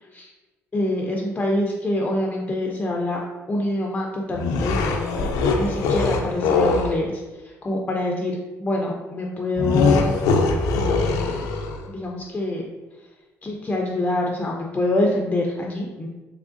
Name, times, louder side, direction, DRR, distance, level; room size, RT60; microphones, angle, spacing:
voice 1, 0.7-3.2 3.5-7.1 7.6-10.2 10.7-11.4 11.9-12.6 13.4-16.1, left 1 dB, 25° left, -1 dB, 0.4 m, -25 dB
sound 1, 4.3-7.0 9.6-11.9, left 3 dB, 90° left, 0.4 m, -22 dB
3.4 x 3.0 x 2.5 m, 1.2 s
supercardioid pair, 80°, 6 cm